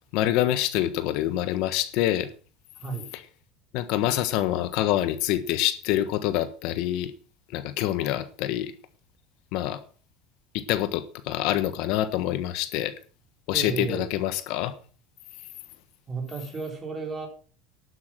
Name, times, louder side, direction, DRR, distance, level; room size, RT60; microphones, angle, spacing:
voice 1, 0.1-2.3 3.7-7.1 7.5-8.7 9.5-9.8 10.5-12.9 13.5-14.7, left 13 dB, 65° left, 1.3 m, -26 dB
voice 2, 2.8-3.1 13.5-14.1 16.1-17.3, right 5 dB, 25° right, 3.9 m, -33 dB
12.0 x 8.2 x 6.3 m
cardioid pair, 140°, 0 cm